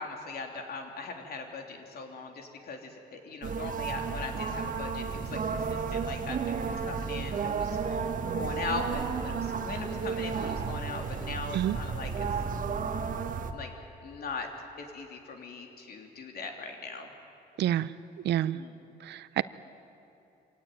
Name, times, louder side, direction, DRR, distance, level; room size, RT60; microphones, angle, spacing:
voice 1, 0.0-8.1 8.3-12.3 13.5-13.7 14.0-14.5 14.8-17.1 18.5-18.8, left 4 dB, 60° left, 3 dB, 3.3 m, -40 dB
sound 1, 3.4-13.5, right 5 dB, 50° right, 1.5 m, -32 dB
voice 2, 17.6-17.9 18.2-18.6 19.0-19.4, right 12 dB, 80° right, 15 dB, 0.7 m, -28 dB
25.5 x 17.5 x 9.2 m, 2.9 s
cardioid pair, 120°, 18 cm